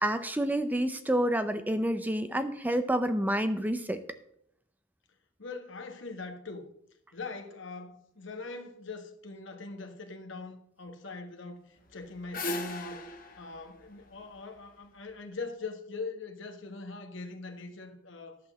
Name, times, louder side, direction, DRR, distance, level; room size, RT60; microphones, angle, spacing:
voice 1, 0.0-4.0, right 1 dB, 10° right, 0.5 m, -28 dB
voice 2, 5.4-6.7 7.1-13.0 13.4-18.4, left 3 dB, 60° left, 1.4 m, -42 dB
sound 1, 11.8-15.0, left 2 dB, 40° left, 1.3 m, -38 dB
11.0 x 6.0 x 6.8 m
head